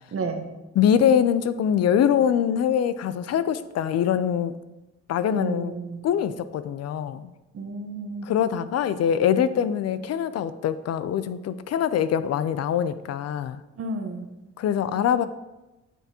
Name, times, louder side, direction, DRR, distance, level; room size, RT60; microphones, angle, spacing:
voice 1, 0.1-0.5 5.3-6.0 7.5-8.3 13.8-14.3, right 3 dB, 50° right, 5 dB, 1.1 m, -32 dB
voice 2, 0.8-4.5 5.1-5.7 6.0-7.3 8.2-13.6 14.6-15.3, left 9 dB, 55° left, 13 dB, 0.4 m, -23 dB
9.3 x 5.8 x 2.9 m, 1.0 s
cardioid pair, 90°, 30 cm